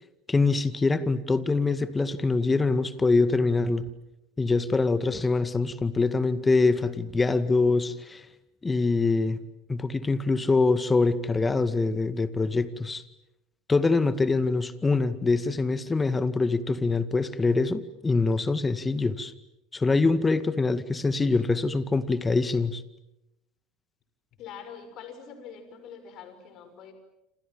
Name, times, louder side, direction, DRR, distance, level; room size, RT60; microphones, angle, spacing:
voice 1, 0.3-3.9 4.4-8.2 8.6-9.4 9.7-13.0 13.7-19.3 19.7-22.8, left 3 dB, 20° left, 13 dB, 2.0 m, -24 dB
voice 2, 24.4-26.9, left 7 dB, 50° left, 9 dB, 6.1 m, -44 dB
28.5 x 27.0 x 7.5 m, 0.88 s
hypercardioid pair, 75°, 0 cm